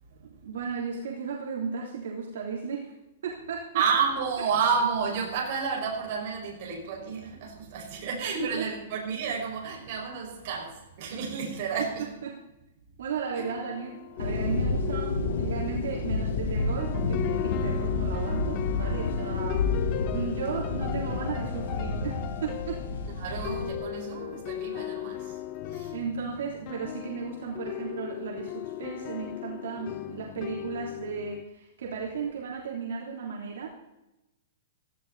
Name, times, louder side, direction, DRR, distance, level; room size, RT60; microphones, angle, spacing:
voice 1, 0.4-2.9 3.2-3.7 8.6-8.7 12.2-12.4 13.0-22.8 23.3-23.4 25.9-33.7, right 6 dB, 80° right, -2 dB, 3.3 m, -35 dB
voice 2, 3.7-12.1 13.3-13.5 23.1-26.0, right 6 dB, 45° right, -1 dB, 5.5 m, -31 dB
sound 1, 13.4-31.4, left 13 dB, 35° left, 0.7 m, -37 dB
sound 2, 14.2-23.7, left 3 dB, 90° left, 3.7 m, -30 dB
17.5 x 14.5 x 4.1 m, 0.95 s
hypercardioid pair, 165°, 0 cm